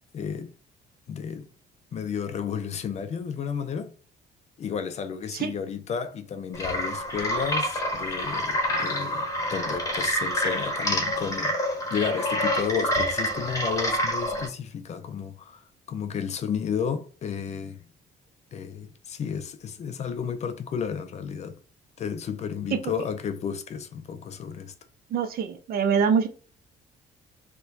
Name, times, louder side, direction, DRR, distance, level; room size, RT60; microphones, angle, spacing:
voice 1, 0.1-0.5 1.1-1.5 1.9-3.9 4.6-17.8 18.5-21.6 22.0-24.7, left 7 dB, 40° left, 0.4 m, -32 dB
sound 1, 6.5-14.5, equal, 20° left, 0.9 m, -27 dB
voice 2, 25.1-26.3, right 6 dB, 55° right, 0.6 m, -24 dB
4.4 x 2.2 x 2.5 m
cardioid pair, 150°, 18 cm